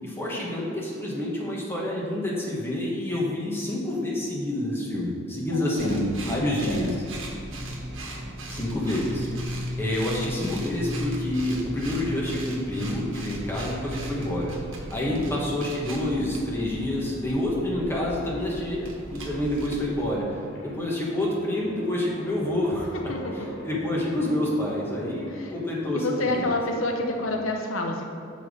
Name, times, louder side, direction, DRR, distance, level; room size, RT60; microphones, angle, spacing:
voice 1, 0.0-6.9 8.5-9.3 9.8-14.5 14.9-20.2 20.6-22.8 23.6-26.5, left 1 dB, 10° left, -5 dB, 1.4 m, -28 dB
voice 2, 5.5-6.0 6.4-7.0 15.1-15.5 23.1-23.3 25.3-25.5 25.9-28.0, left 2 dB, 80° left, 2 dB, 0.8 m, -29 dB
sound 1, 5.8-20.2, equal, 70° right, 1.2 m, -36 dB
sound 2, 20.3-27.4, right 1 dB, 60° left, 1.3 m, -42 dB
6.0 x 5.3 x 6.4 m, 2.6 s
head